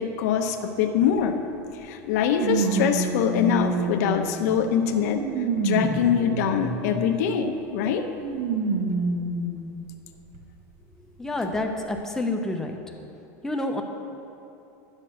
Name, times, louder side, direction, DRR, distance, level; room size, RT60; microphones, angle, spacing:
voice 1, 0.0-1.4 1.8-5.2 5.6-8.1, left 8 dB, 80° left, 5 dB, 0.8 m, -24 dB
sound 1, 1.2-1.3 2.4-4.4 5.0-7.0 8.2-9.6 10.3-10.4 11.6-11.7, right 3 dB, 60° right, 1.4 m, -27 dB
voice 2, 11.2-12.8 13.4-13.8, left 2 dB, 5° left, 3 dB, 0.8 m, -28 dB
10.5 x 6.6 x 6.1 m, 2.8 s
supercardioid pair, 150°, 9 cm